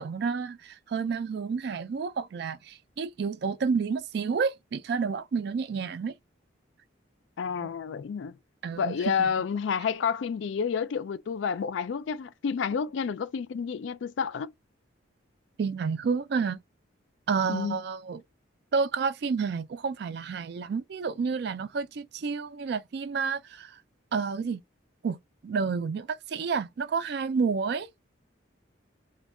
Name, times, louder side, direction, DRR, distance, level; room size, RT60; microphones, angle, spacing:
voice 1, 0.0-6.1 7.6-7.7 8.6-9.3 15.6-16.6 17.3-18.2 18.7-23.7 24.1-24.6 25.0-25.2 25.4-27.9, right 5 dB, 55° right, 0.3 m, -30 dB
voice 2, 7.4-8.4 8.8-14.5 17.5-17.8, left 6 dB, 70° left, 0.3 m, -30 dB
2.2 x 2.2 x 3.5 m
head